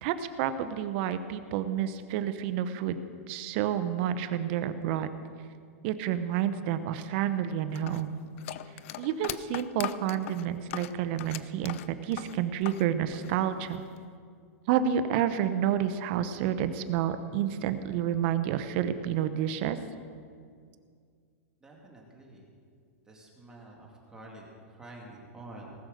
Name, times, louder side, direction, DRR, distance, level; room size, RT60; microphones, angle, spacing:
voice 1, 0.0-3.0 3.3-5.1 5.8-8.2 9.0-13.8 14.7-19.8, right 10 dB, 45° right, 11 dB, 0.8 m, -29 dB
sound 1, 7.7-12.9 13.1-14.0, left 13 dB, 60° left, 0.5 m, -39 dB
voice 2, 21.6-22.5 23.1-25.7, right 2 dB, 10° right, -2 dB, 2.3 m, -48 dB
19.0 x 6.4 x 6.5 m, 2.1 s
hypercardioid pair, 145°, 8 cm